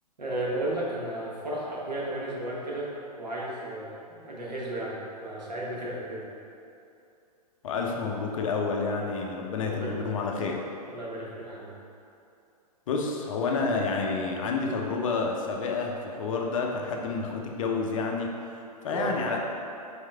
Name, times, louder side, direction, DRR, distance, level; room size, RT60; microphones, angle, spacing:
voice 1, 0.2-6.2 9.6-10.2 10.9-11.7 18.9-19.2, right 1 dB, 85° right, -5 dB, 1.1 m, -34 dB
voice 2, 7.6-10.6 12.9-19.4, left 4 dB, 50° left, 1 dB, 0.6 m, -29 dB
4.1 x 3.2 x 3.3 m, 2.6 s
figure-of-eight pair, 115°, 21 cm